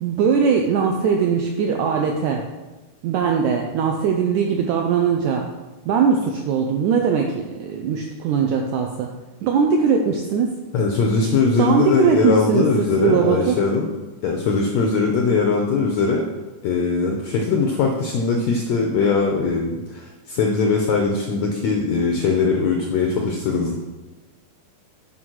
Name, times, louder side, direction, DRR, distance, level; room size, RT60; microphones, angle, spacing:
voice 1, 0.0-2.5 3.0-5.5 5.9-9.1 9.4-10.5 11.6-13.6, right 6 dB, 90° right, 2 dB, 1.7 m, -20 dB
voice 2, 10.7-13.9 14.2-16.2 16.6-23.8, left 4 dB, 90° left, 1 dB, 1.6 m, -20 dB
9.0 x 3.7 x 6.1 m, 1.2 s
omnidirectional pair, 4.0 m